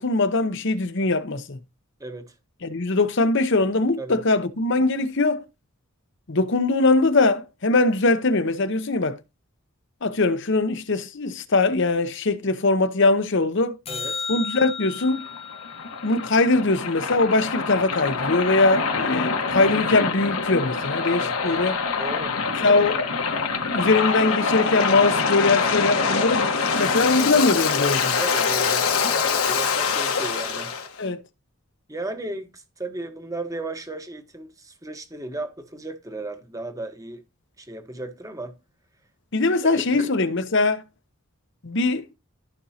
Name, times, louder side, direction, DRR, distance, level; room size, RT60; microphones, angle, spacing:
voice 1, 0.0-1.6 2.6-5.4 6.3-9.2 10.0-13.8 14.3-15.3 16.0-21.8 22.6-23.0 23.7-28.2 31.0-31.2 39.3-40.8 41.6-42.1, left 3 dB, 55° left, 0.8 m, -21 dB
voice 2, 2.0-2.3 4.0-4.2 13.9-14.3 21.2-21.4 22.0-22.4 28.1-30.7 31.9-37.2 37.6-38.6 39.6-40.1, right 2 dB, 15° right, 1.1 m, -35 dB
sound 1, 13.9-18.3 24.9-25.0, left 5 dB, 25° left, 0.6 m, -36 dB
Waves surf, 15.1-30.9, left 5 dB, 75° left, 1.4 m, -25 dB
14.0 x 5.3 x 2.8 m
head